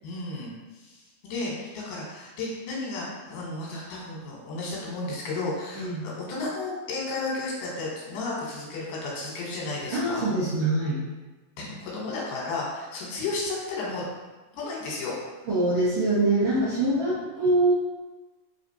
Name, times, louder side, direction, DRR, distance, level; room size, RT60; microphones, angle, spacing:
voice 1, 0.0-0.5 0.8-10.3 11.6-14.0 14.5-15.1, left 3 dB, 85° left, -4 dB, 2.6 m, -33 dB
voice 2, 5.7-6.1 9.9-11.0 15.5-17.7, right 2 dB, 60° right, -11 dB, 1.3 m, -24 dB
5.0 x 3.2 x 2.7 m, 1.2 s
omnidirectional pair, 3.7 m